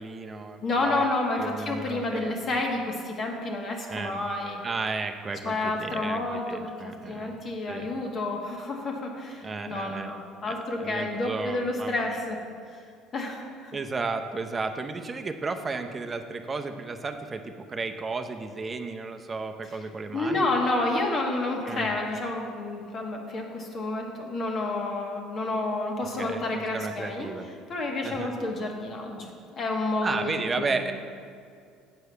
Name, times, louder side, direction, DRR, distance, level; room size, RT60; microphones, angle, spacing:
voice 1, 0.0-1.0 1.3-2.3 3.9-4.2 4.6-7.4 7.7-7.9 9.4-10.1 10.5-12.2 13.7-20.5 21.6-21.9 26.2-27.5 28.0-28.3 30.0-30.9, right 4 dB, 25° right, 6 dB, 0.7 m, -33 dB
voice 2, 0.6-4.6 5.4-12.4 13.1-13.8 20.1-27.3 27.7-30.9, left 2 dB, 40° left, 1 dB, 1.5 m, -30 dB
7.9 x 4.8 x 6.9 m, 2.3 s
supercardioid pair, 95°, 0 cm